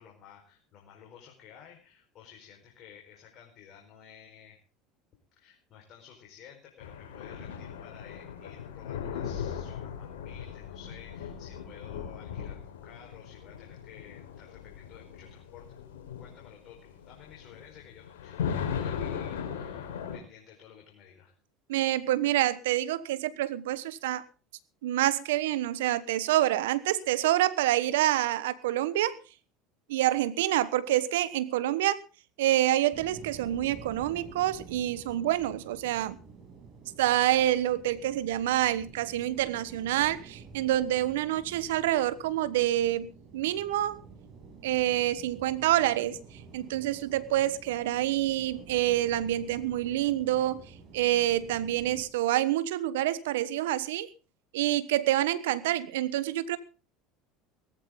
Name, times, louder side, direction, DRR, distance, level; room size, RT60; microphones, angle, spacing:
voice 1, 0.0-4.6 5.3-15.8 16.2-21.3, left 8 dB, 50° left, 1 dB, 4.8 m, -53 dB
sound 1, 6.8-20.2, left 7 dB, 80° left, 4.3 m, -38 dB
voice 2, 21.7-24.2 24.8-29.2 29.9-32.0 32.4-36.2 37.0-44.0 44.6-54.1 54.5-56.6, right 14 dB, 75° right, 16 dB, 1.2 m, -27 dB
sound 2, 32.9-52.1, right 5 dB, 50° right, 7.6 m, -50 dB
18.5 x 14.5 x 3.8 m, 0.35 s
hypercardioid pair, 80°, 0 cm